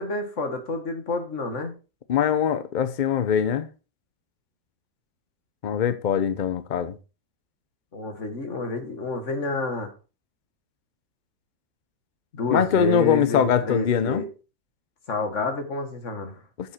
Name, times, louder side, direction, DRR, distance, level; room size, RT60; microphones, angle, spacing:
voice 1, 0.0-1.7 7.9-9.9 12.3-14.2 15.1-16.4, left 2 dB, 45° left, 1.9 m, -29 dB
voice 2, 2.1-3.7 5.6-7.0 12.5-14.2 16.6-16.7, left 8 dB, 90° left, 0.4 m, -22 dB
8.7 x 7.3 x 4.3 m
omnidirectional pair, 1.8 m